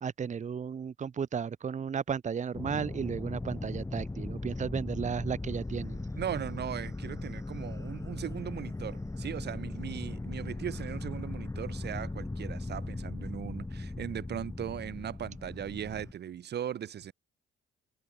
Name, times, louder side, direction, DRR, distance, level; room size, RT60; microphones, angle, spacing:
voice 1, 0.0-6.0, right 7 dB, 35° right, 1.0 m, -34 dB
sound 1, 2.5-16.1, left 2 dB, 15° left, 3.7 m, -38 dB
voice 2, 6.2-17.1, right 9 dB, 55° right, 1.2 m, -38 dB
cardioid pair, 90°, 20 cm